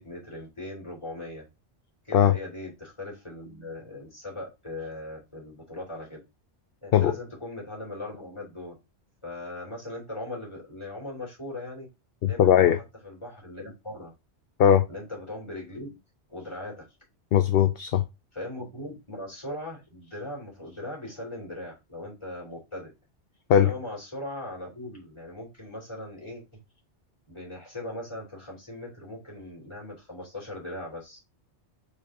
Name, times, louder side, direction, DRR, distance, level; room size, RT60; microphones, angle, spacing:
voice 1, 0.0-1.4 2.0-6.2 6.8-8.8 9.2-11.9 12.2-12.7 13.0-14.1 14.9-16.0 16.3-16.9 18.3-22.9 23.5-26.4 27.3-31.2, left 1 dB, 25° left, 3.4 m, -39 dB
voice 2, 12.2-12.8 14.6-14.8 17.3-18.0 23.5-23.7, left 9 dB, 60° left, 0.8 m, -19 dB
5.2 x 5.1 x 3.7 m
omnidirectional pair, 1.2 m